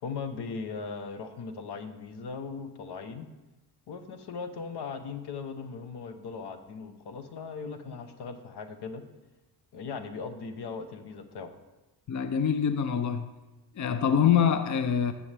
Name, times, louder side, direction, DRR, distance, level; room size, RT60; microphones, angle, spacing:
voice 1, 0.0-3.3 3.9-9.0 9.7-11.5, left 5 dB, 70° left, 9 dB, 1.0 m, -38 dB
voice 2, 12.1-13.3 13.8-15.1, left 8 dB, 45° left, 10 dB, 0.7 m, -25 dB
13.0 x 7.0 x 3.4 m, 1.1 s
supercardioid pair, 60°, 41 cm